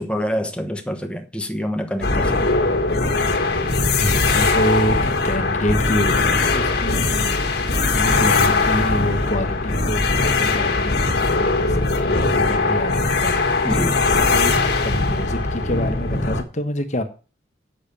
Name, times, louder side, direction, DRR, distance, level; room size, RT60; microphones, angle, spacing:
voice 1, 0.0-2.5 13.6-14.1, equal, 5° left, 1.0 m, -26 dB
sound 1, 2.0-16.4, left 3 dB, 55° left, 1.5 m, -20 dB
voice 2, 3.9-7.4 7.8-13.4 14.3-14.5 14.8-17.0, equal, 40° left, 1.1 m, -27 dB
8.5 x 6.6 x 6.7 m
head